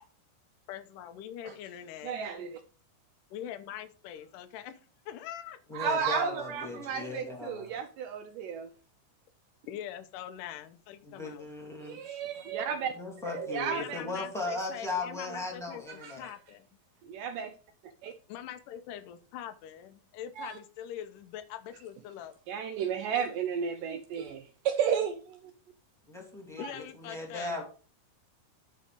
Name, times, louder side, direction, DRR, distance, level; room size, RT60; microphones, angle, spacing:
voice 1, 0.7-2.2 3.3-5.6 9.7-11.5 13.7-16.7 18.3-22.3 26.6-27.6, left 10 dB, 75° left, 2.1 m, -43 dB
voice 2, 2.0-2.6 5.7-8.7 11.8-12.9 13.3-14.0 15.9-16.3 17.0-17.5 18.0-18.1 20.4-20.6 22.5-25.5 26.6-26.7 27.5-27.6, right 7 dB, 85° right, 1.9 m, -33 dB
voice 3, 5.7-7.8 11.0-12.2 12.9-16.3 26.1-27.6, left 3 dB, ahead, 1.6 m, -37 dB
11.5 x 4.1 x 5.0 m
omnidirectional pair, 4.5 m